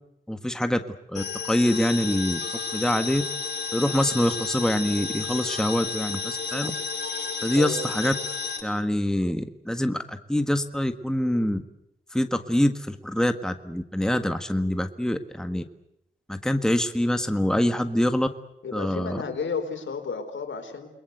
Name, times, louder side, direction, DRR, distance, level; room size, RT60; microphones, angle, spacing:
voice 1, 0.3-0.8 1.1-2.4 2.7-3.2 3.7-6.7 7.4-8.1 8.6-11.6 12.1-15.6 16.3-18.3 18.7-19.2, left 1 dB, 5° left, 8 dB, 1.7 m, -25 dB
sound 1, 1.1-8.6, left 4 dB, 60° left, 7.6 m, -32 dB
voice 2, 18.6-20.9, left 5 dB, 80° left, 7 dB, 4.3 m, -32 dB
29.0 x 22.0 x 8.1 m, 0.81 s
wide cardioid pair, 90°, 20 cm